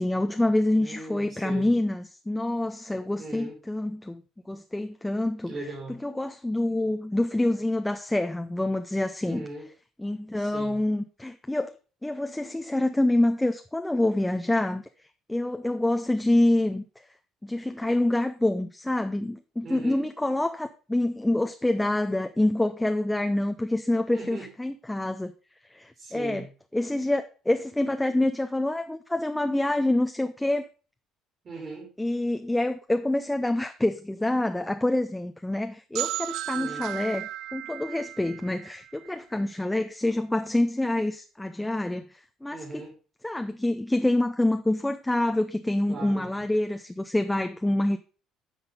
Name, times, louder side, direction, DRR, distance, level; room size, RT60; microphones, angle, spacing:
voice 1, 0.0-4.2 4.5-5.5 6.0-9.5 10.0-11.7 12.0-14.8 15.3-16.8 17.4-25.3 25.7-26.4 26.7-30.7 32.0-42.6 43.2-48.0, left 1 dB, 10° left, 0.7 m, -26 dB
voice 2, 0.7-1.7 3.2-3.6 5.5-6.0 9.2-9.7 10.3-10.8 19.6-20.1 24.1-24.5 25.9-26.5 31.4-31.9 36.5-36.9 42.5-43.0 45.9-46.3, right 3 dB, 40° right, 4.2 m, -39 dB
sound 1, 35.9-39.6, right 14 dB, 65° right, 0.3 m, -35 dB
9.7 x 5.7 x 5.4 m
figure-of-eight pair, 55°, 0 cm